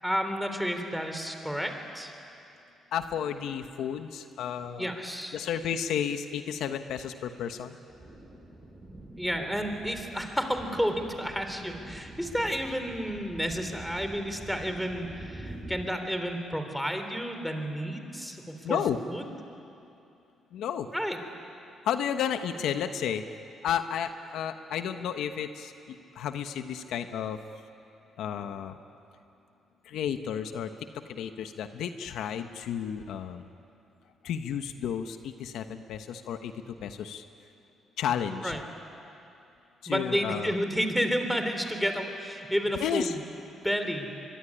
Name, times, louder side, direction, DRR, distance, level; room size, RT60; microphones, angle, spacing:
voice 1, 0.0-2.1 4.8-5.4 9.2-18.8 19.1-19.2 20.9-21.2 38.4-38.6 39.9-43.2 43.6-44.1, equal, ahead, 6 dB, 3.4 m, -31 dB
voice 2, 2.9-4.9 5.3-7.8 18.6-19.0 20.5-20.9 21.8-23.2 23.6-27.4 28.2-28.8 29.8-30.7 31.1-33.5 34.2-37.2 38.0-38.6 39.8-40.5 42.8-43.1, left 8 dB, 80° left, 8 dB, 1.1 m, -32 dB
sound 1, 7.9-15.8, right 1 dB, 20° right, 4.8 m, -45 dB
23.5 x 23.5 x 10.0 m, 2.7 s
cardioid pair, 90°, 0 cm